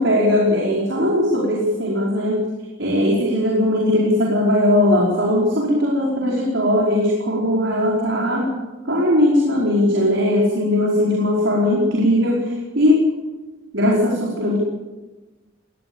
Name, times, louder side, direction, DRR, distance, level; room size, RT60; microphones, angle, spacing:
voice 1, 0.0-2.4 2.8-8.5 8.8-12.5 12.7-13.1 13.7-14.6, left 1 dB, 75° right, -3 dB, 5.1 m, -19 dB
20.5 x 19.0 x 7.2 m, 1.2 s
head